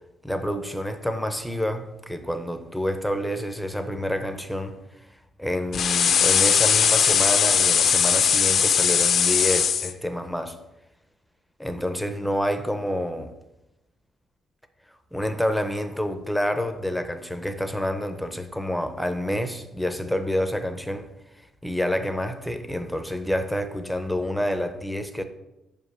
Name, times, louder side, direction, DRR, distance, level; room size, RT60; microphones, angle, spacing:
voice 1, 0.2-5.1 5.4-10.6 11.6-13.3 15.1-21.1 21.6-25.2, equal, ahead, 0.5 m, -28 dB
sound 1, 5.7-9.9, left 7 dB, 50° left, 0.4 m, -20 dB
5.2 x 5.2 x 6.5 m
cardioid pair, 145°, 0 cm